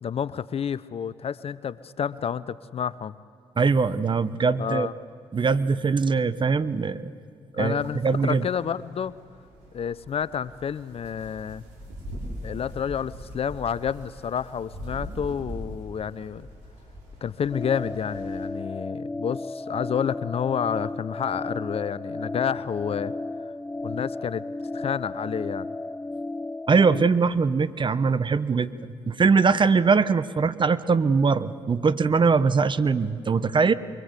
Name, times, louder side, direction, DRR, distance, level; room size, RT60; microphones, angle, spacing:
voice 1, 0.0-3.2 4.6-4.9 7.6-9.1 9.7-11.6 12.4-16.5 17.2-23.1 23.8-24.4 24.7-25.7, left 8 dB, 50° left, 18 dB, 0.7 m, -29 dB
voice 2, 3.6-4.9 5.3-7.1 7.5-8.4 26.7-28.7 29.1-33.7, right 5 dB, 40° right, 14 dB, 1.0 m, -22 dB
sound 1, 7.8-18.5, equal, 80° right, 5.7 m, -42 dB
sound 2, 17.5-27.1, left 2 dB, 10° left, 0.7 m, -34 dB
24.5 x 23.5 x 8.2 m, 2.2 s
hypercardioid pair, 50°, 12 cm